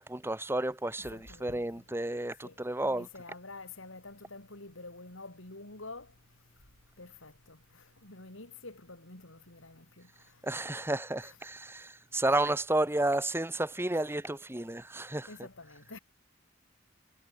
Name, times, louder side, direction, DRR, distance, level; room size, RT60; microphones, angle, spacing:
voice 1, 0.0-3.1 10.4-15.3, right 1 dB, 10° right, 1.4 m, -31 dB
voice 2, 1.0-1.8 2.4-2.6 2.8-6.1 7.0-10.1 11.2-11.4 15.3-16.0, left 2 dB, 85° left, 4.8 m, -48 dB
head